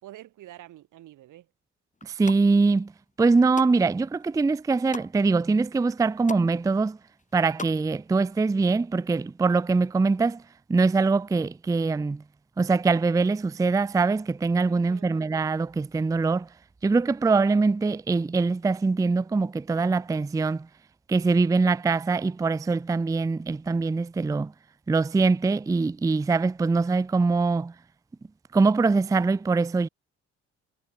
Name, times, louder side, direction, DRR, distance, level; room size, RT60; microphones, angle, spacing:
voice 1, 0.0-1.5 14.7-15.2, right 14 dB, 85° right, 5.7 m, -47 dB
sound 1, 1.9-2.4 3.0-3.8 4.2-5.1 5.6-5.7 5.9-6.5 6.8-7.8 8.1-8.2, left 3 dB, 25° left, 6.8 m, -40 dB
voice 2, 2.0-2.9 3.2-7.0 7.3-10.4 10.7-12.2 12.6-16.5 16.8-20.7 21.1-24.5 24.9-27.7 28.5-29.9, right 4 dB, 10° right, 0.4 m, -23 dB
cardioid pair, 90°, 30 cm